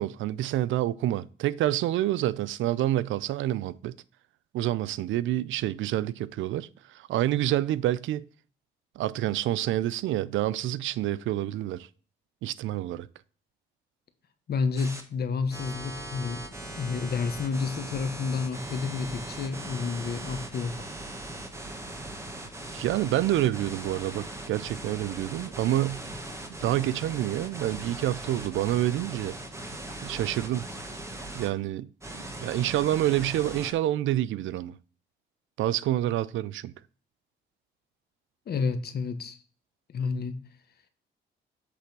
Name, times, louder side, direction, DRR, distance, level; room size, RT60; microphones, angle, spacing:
voice 1, 0.0-3.9 4.5-8.2 9.0-11.9 12.4-13.1 22.7-26.0 26.6-29.4 30.0-30.7 31.3-31.9 32.1-34.7 35.6-36.7, right 13 dB, 75° right, 0.5 m, -28 dB
voice 2, 14.5-16.4 16.8-20.7 38.5-39.4 39.9-40.4, left 5 dB, 55° left, 1.1 m, -30 dB
sound 1, 14.8-15.0 15.5-31.5 32.0-33.7, right 1 dB, 15° right, 1.5 m, -39 dB
8.3 x 3.4 x 6.0 m
cardioid pair, 90°, 20 cm